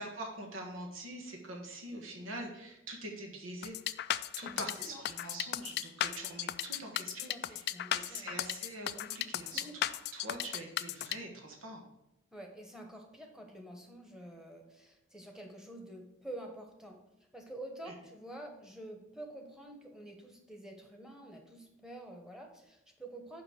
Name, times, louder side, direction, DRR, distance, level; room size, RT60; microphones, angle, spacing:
voice 1, 0.0-3.8 4.4-7.6 7.9-9.7 10.1-11.8 17.8-17.9, right 1 dB, 90° right, 1 dB, 1.4 m, -44 dB
sound 1, 3.6-11.2, left 12 dB, 55° left, 0.3 m, -35 dB
voice 2, 4.4-5.0 7.2-8.4 9.5-9.8 12.3-17.0 17.3-23.4, right 1 dB, 5° right, 2 dB, 1.2 m, -48 dB
5.9 x 5.3 x 6.6 m, 0.84 s
head